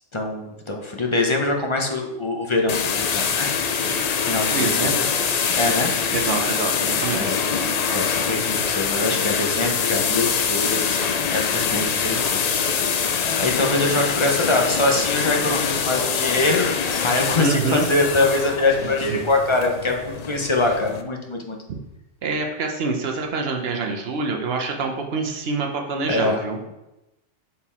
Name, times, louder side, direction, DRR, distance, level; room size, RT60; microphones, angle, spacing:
voice 1, 0.1-3.5 4.2-5.0 5.6-5.9 7.1-7.4 7.9-16.7 17.0-21.6 26.1-26.4, left 2 dB, 30° left, 2 dB, 0.6 m, -23 dB
sound 1, 2.7-21.0, left 6 dB, 70° left, 0.3 m, -24 dB
voice 2, 4.5-4.9 6.1-7.3 17.4-17.9 19.1-19.2 21.7-21.8 22.2-26.6, right 4 dB, 55° right, 2 dB, 1.0 m, -26 dB
5.5 x 4.4 x 4.2 m, 0.95 s
omnidirectional pair, 1.3 m